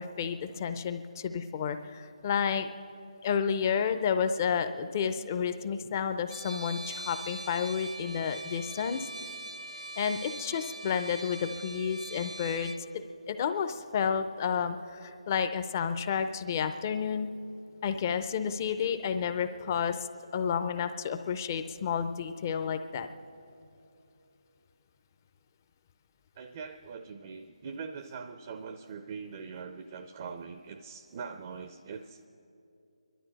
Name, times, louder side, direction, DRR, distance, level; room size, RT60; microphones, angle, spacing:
voice 1, 0.0-2.7 3.2-9.1 10.0-17.3 17.8-20.1 20.3-23.1, left 7 dB, 25° left, 10 dB, 0.6 m, -31 dB
Trumpet, 6.3-12.8, right 2 dB, 75° right, 1.0 m, -42 dB
voice 2, 26.4-32.3, right 5 dB, 30° right, 8 dB, 0.5 m, -42 dB
28.5 x 12.0 x 4.1 m, 2.8 s
figure-of-eight pair, 160°, 4 cm